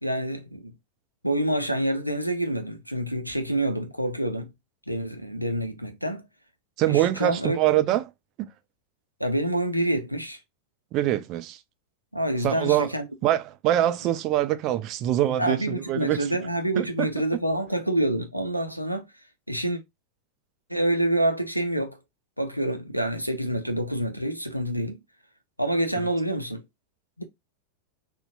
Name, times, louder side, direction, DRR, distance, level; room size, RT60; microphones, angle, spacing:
voice 1, 0.0-0.7 1.2-4.5 4.9-6.3 6.9-7.8 9.2-10.4 12.1-13.0 15.4-19.0 19.5-19.8 20.7-22.0 22.4-25.0 25.6-26.6 27.2-27.3, right 1 dB, 90° left, 0.5 m, -27 dB
voice 2, 6.8-8.1 10.9-11.6 12.4-12.9 13.2-16.2 16.8-16.9, right 13 dB, 40° right, 0.3 m, -24 dB
3.9 x 2.1 x 2.5 m
figure-of-eight pair, 90°, 0 cm